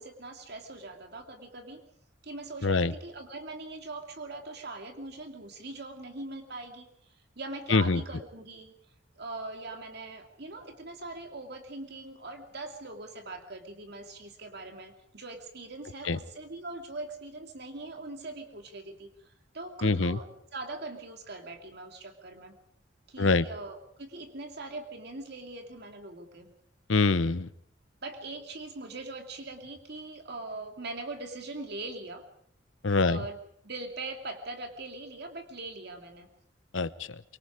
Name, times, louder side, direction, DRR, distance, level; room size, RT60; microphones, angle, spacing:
voice 1, 0.0-1.8 2.2-8.7 9.1-22.6 23.1-26.5 28.0-32.2 33.0-33.4 33.6-36.3, right 2 dB, 60° right, 4 dB, 2.6 m, -41 dB
voice 2, 2.6-2.9 7.7-8.0 16.0-16.2 19.8-20.2 23.2-23.4 26.9-27.5 32.8-33.2 36.7-37.2, left 3 dB, 80° left, 15 dB, 0.9 m, -25 dB
24.5 x 24.0 x 5.0 m, 0.67 s
head